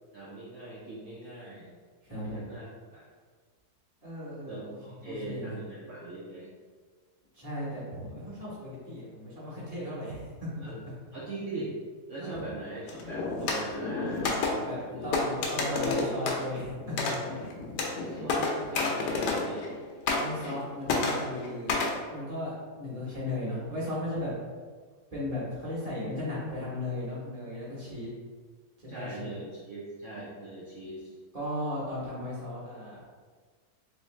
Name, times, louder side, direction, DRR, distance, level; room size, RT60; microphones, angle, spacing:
voice 1, 0.1-1.7 2.2-3.1 4.5-6.5 10.6-10.8 11.1-11.7 12.1-14.4 14.9-15.1 15.5-16.1 18.0-19.7 28.9-31.1, right 2 dB, 75° right, -6 dB, 0.6 m, -40 dB
voice 2, 2.0-2.5 4.0-5.6 7.3-10.7 12.2-12.4 14.5-17.3 20.1-24.3 25.1-28.1 28.8-29.4 31.3-33.1, left 1 dB, 25° right, -8 dB, 1.0 m, -36 dB
sound 1, 12.9-19.8 20.1-20.6 20.9-22.0, left 3 dB, 70° left, 1.1 m, -30 dB
3.2 x 3.2 x 3.1 m, 1.5 s
omnidirectional pair, 2.0 m